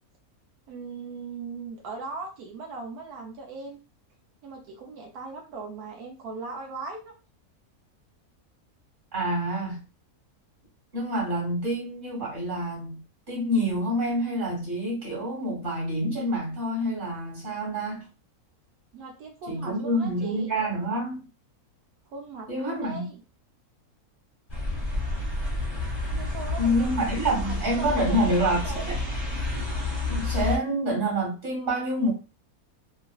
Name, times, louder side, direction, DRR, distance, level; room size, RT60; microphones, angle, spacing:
voice 1, 0.7-3.8 4.4-7.1 18.9-20.5 22.1-23.2 26.1-27.1 27.4-28.9, right 3 dB, 85° right, 1.2 m, -39 dB
voice 2, 9.1-9.8 10.9-13.0 13.3-18.1 19.5-21.3 22.5-23.1 26.6-29.0 30.1-32.1, equal, 35° right, 1.6 m, -27 dB
sound 1, 24.5-30.6, left 2 dB, 20° left, 0.8 m, -30 dB
3.0 x 2.4 x 2.3 m
omnidirectional pair, 1.6 m